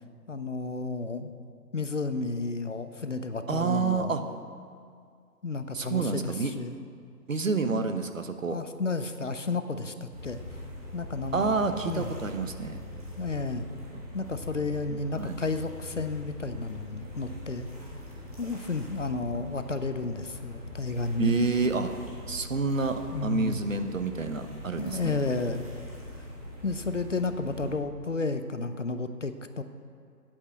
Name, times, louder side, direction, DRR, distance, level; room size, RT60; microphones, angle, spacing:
voice 1, 0.3-1.3 1.7-4.1 5.4-6.8 7.7-7.9 8.5-10.6 10.9-12.1 13.2-13.7 14.1-17.7 18.4-21.3 23.1-23.6 24.8-25.7 26.6-29.6, left 3 dB, 50° left, 9 dB, 0.6 m, -32 dB
voice 2, 3.5-4.2 5.7-6.5 7.3-8.6 11.3-12.8 15.2-15.4 21.2-21.9 22.3-25.1, right 4 dB, 55° right, 8 dB, 0.9 m, -28 dB
sound 1, 10.1-27.7, left 1 dB, 25° right, 1.5 m, -42 dB
8.7 x 8.4 x 8.0 m, 2.3 s
hypercardioid pair, 180°, 48 cm